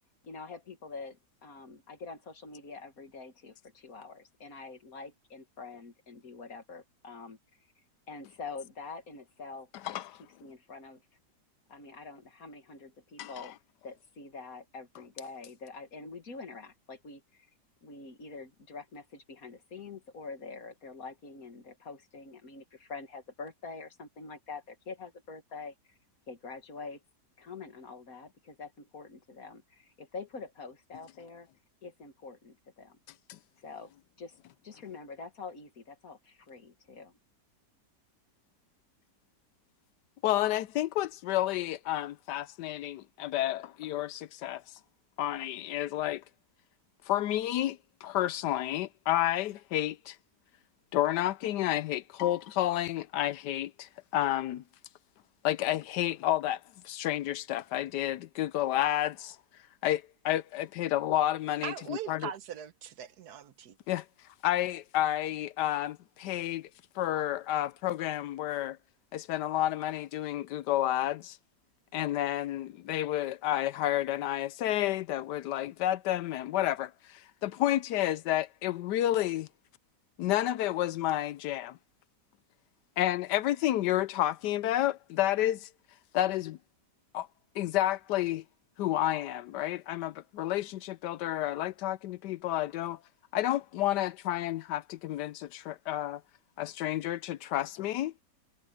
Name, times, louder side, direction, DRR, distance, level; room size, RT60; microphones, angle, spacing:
voice 1, 0.2-7.4 8.1-11.0 11.7-13.6 13.8-17.5 17.8-25.7 26.3-27.0 27.4-31.5 31.8-33.0 33.6-33.9 34.2-34.4 34.6-37.2, left 4 dB, 55° left, 2.2 m, -45 dB
voice 2, 9.8-10.2 13.2-13.5 33.3-33.4 40.2-44.6 45.2-46.2 47.1-50.2 50.9-54.6 55.4-56.6 56.8-59.4 59.8-62.3 63.9-64.0 64.4-66.7 67.0-68.8 69.1-71.4 71.9-79.5 80.2-81.8 83.0-85.7 86.1-86.6 87.1-87.3 87.6-88.4 88.8-93.0 93.3-96.2 96.6-98.1, left 13 dB, 80° left, 1.2 m, -30 dB
voice 3, 61.6-63.8, right 9 dB, 65° right, 1.4 m, -40 dB
omnidirectional pair, 1.8 m